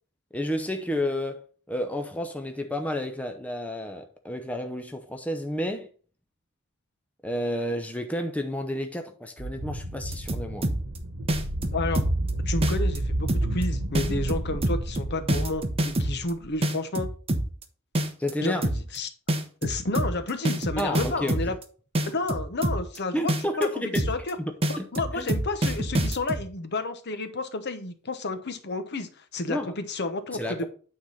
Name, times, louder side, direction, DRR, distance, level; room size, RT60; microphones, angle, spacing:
voice 1, 0.3-5.9 7.2-10.7 18.2-18.6 20.8-21.4 23.1-24.1 24.4-24.9 25.1-25.3 29.5-29.7 30.3-30.6, left 1 dB, 5° left, 0.6 m, -31 dB
sound 1, 9.4-16.5, right 1 dB, 85° right, 1.1 m, -30 dB
sound 2, 10.0-11.0 11.3-12.3 12.6-13.0 13.3-13.6 14.0-16.3 16.6-17.6 18.0-18.3 18.6-19.0 19.3-21.6 22.0-23.0 23.3-23.6 24.0-24.3 24.6-26.4, right 1 dB, 30° right, 0.9 m, -26 dB
voice 2, 11.7-12.1 12.5-17.1 18.4-19.1 19.6-21.6 22.1-23.3 23.6-24.4 24.7-30.7, left 2 dB, 55° left, 1.0 m, -31 dB
9.0 x 3.8 x 5.6 m
head